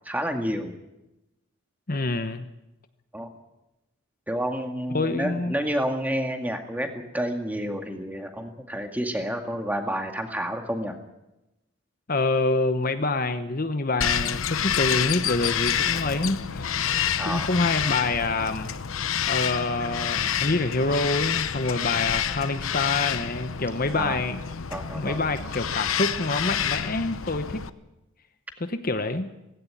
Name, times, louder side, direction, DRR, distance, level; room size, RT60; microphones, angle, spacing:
voice 1, 0.1-0.8 3.1-3.3 4.3-11.0 17.2-17.5 23.9-24.2 24.7-25.2, equal, 10° right, 4 dB, 2.0 m, -29 dB
voice 2, 1.9-2.5 4.9-5.5 12.1-16.8 17.2-18.7 19.3-24.4 24.9-27.6 28.6-29.3, left 2 dB, 45° left, 9 dB, 1.0 m, -26 dB
Bird vocalization bird call bird song, 14.0-27.7, left 8 dB, 80° left, 0.8 m, -28 dB
18.0 x 16.5 x 9.8 m, 0.96 s
head